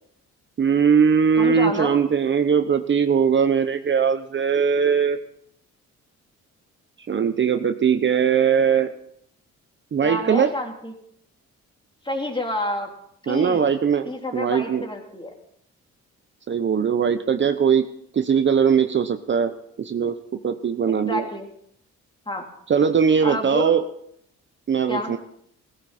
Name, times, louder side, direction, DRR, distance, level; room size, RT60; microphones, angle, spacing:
voice 1, 0.6-5.2 7.1-8.9 9.9-10.5 13.3-14.8 16.5-17.9 18.1-20.2 20.4-21.3 22.7-23.8 24.7-25.2, right 7 dB, 40° right, 9 dB, 0.9 m, -20 dB
voice 2, 1.4-2.0 10.0-10.9 12.0-12.9 13.2-13.7 14.0-15.3 20.9-21.5 22.2-22.5 23.2-23.7 24.9-25.2, left 1 dB, 15° left, 1 dB, 3.5 m, -29 dB
17.0 x 14.5 x 4.3 m, 0.70 s
cardioid pair, 90°, 30 cm